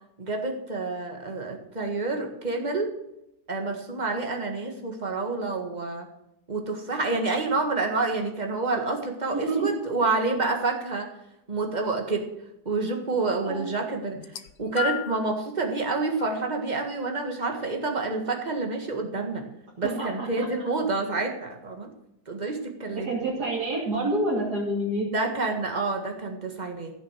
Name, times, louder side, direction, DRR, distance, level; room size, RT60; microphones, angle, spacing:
voice 1, 0.2-2.9 3.5-6.1 6.5-11.1 11.5-12.3 12.6-14.2 14.6-19.4 19.8-21.9 22.3-23.1 25.1-26.9, right 3 dB, 25° right, 3 dB, 1.8 m, -28 dB
voice 2, 9.3-9.8 13.4-13.8 19.8-20.7 22.9-25.1, right 1 dB, 75° right, -5 dB, 3.4 m, -28 dB
sound 1, 14.1-15.3 16.2-16.4 17.4-17.5, left 14 dB, 75° left, 1.4 m, -33 dB
15.0 x 6.6 x 7.4 m, 0.86 s
omnidirectional pair, 1.7 m